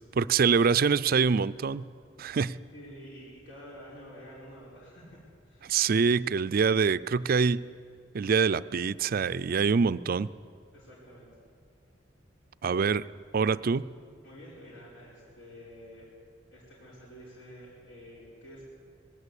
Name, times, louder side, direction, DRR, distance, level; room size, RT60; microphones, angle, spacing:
voice 1, 0.1-1.9 2.2-2.6 5.6-7.6 8.1-10.3 12.6-13.1 13.3-13.9, right 5 dB, 50° right, 15 dB, 0.4 m, -25 dB
voice 2, 2.7-5.2 5.5-5.8 10.7-11.3 14.2-16.1 16.5-18.6, equal, 70° left, -5 dB, 5.0 m, -49 dB
20.0 x 16.5 x 8.3 m, 2.3 s
head